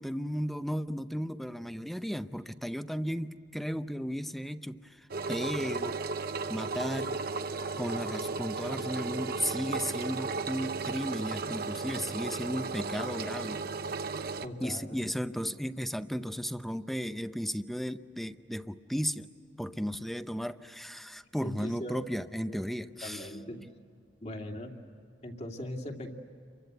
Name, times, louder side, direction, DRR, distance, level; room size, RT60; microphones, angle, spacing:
voice 1, 0.0-6.0 6.5-7.2 7.8-13.7 14.6-19.3 19.6-23.3, equal, ahead, 11 dB, 0.7 m, -35 dB
Engine, 5.1-14.5, right 4 dB, 55° right, 0.8 m, -35 dB
voice 2, 14.4-15.0 21.4-22.0 22.5-22.6 23.0-23.6 24.2-24.7 25.2-26.1, left 1 dB, 35° left, 3 dB, 2.6 m, -39 dB
29.5 x 24.0 x 8.1 m, 2.4 s
head